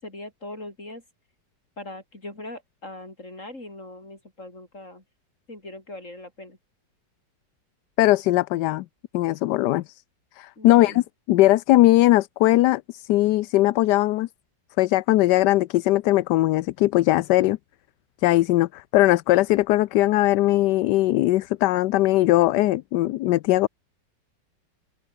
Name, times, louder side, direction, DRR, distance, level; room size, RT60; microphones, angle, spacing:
voice 1, 0.0-1.0 1.8-5.0 5.5-6.6 10.6-11.0, left 2 dB, 40° left, 7.5 m, -40 dB
voice 2, 8.0-8.8 9.1-9.8 10.4-11.0 11.3-14.3 14.8-17.6 18.2-23.7, left 16 dB, 75° left, 1.1 m, -19 dB
omnidirectional pair, 2.0 m